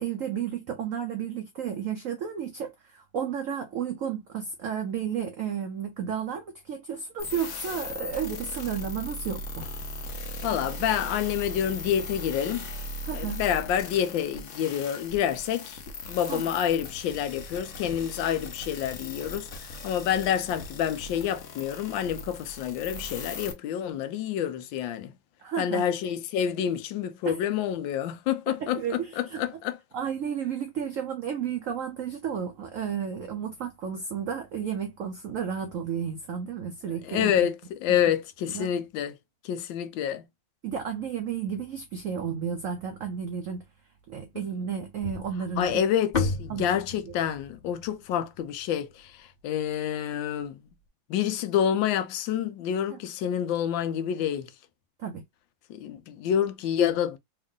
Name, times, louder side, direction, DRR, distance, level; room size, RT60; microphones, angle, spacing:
voice 1, 0.0-9.7 13.0-13.4 16.3-16.4 25.4-25.9 27.2-27.4 28.5-29.4 29.9-37.5 37.9-38.0 38.5-38.7 40.6-43.6 44.1-45.8 46.5-46.7 47.0-47.1 52.9-53.0 55.0-55.2, right 8 dB, 80° right, 0.7 m, -32 dB
sound 1, 7.2-23.5, left 2 dB, 55° left, 0.9 m, -39 dB
voice 2, 10.4-12.7 13.1-15.8 16.1-19.5 19.8-25.1 25.6-29.8 37.0-37.6 37.8-39.2 39.4-40.2 45.6-50.6 51.1-54.5 55.7-57.2, left 9 dB, 80° left, 1.3 m, -28 dB
sound 2, 45.0-49.3, left 4 dB, 30° left, 1.0 m, -34 dB
3.6 x 2.3 x 3.7 m
omnidirectional pair, 2.1 m